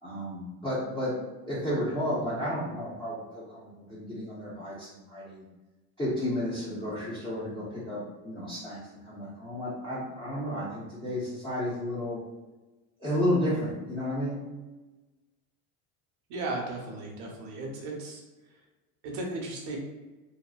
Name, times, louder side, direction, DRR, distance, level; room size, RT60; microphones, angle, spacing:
voice 1, 0.0-1.2 1.4-5.5 6.0-12.2 13.0-14.4, left 1 dB, 10° left, -10 dB, 0.6 m, -32 dB
voice 2, 16.3-18.2 19.0-19.8, right 2 dB, 70° right, 0 dB, 0.8 m, -35 dB
2.7 x 2.1 x 2.3 m, 1.2 s
supercardioid pair, 115°, 39 cm